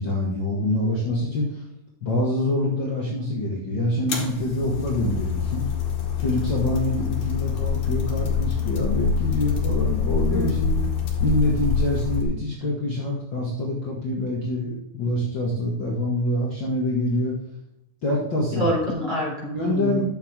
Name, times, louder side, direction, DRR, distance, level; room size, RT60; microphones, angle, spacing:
voice 1, 0.0-1.6 2.0-5.6 6.2-10.6 11.2-17.3 18.0-18.7 19.5-20.0, left 1 dB, 40° left, -4 dB, 2.2 m, -25 dB
sound 1, 4.1-12.2, left 6 dB, 70° left, 3.4 m, -25 dB
voice 2, 10.3-10.9 18.5-20.0, equal, 15° right, -5 dB, 3.5 m, -27 dB
11.0 x 7.3 x 3.7 m, 0.82 s
omnidirectional pair, 3.6 m